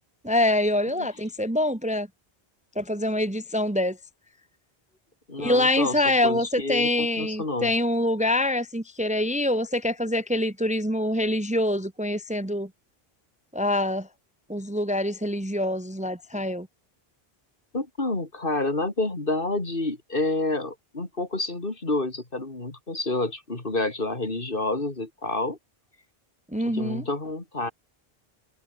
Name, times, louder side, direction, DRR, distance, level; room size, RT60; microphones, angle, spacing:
voice 1, 0.2-2.1 2.8-4.0 5.4-12.7 13.5-14.1 14.5-16.7 26.5-27.0, left 1 dB, 5° right, 1.1 m, -25 dB
voice 2, 5.3-7.7 17.7-25.6 26.6-27.7, left 2 dB, 60° left, 3.6 m, -29 dB
omnidirectional pair, 1.0 m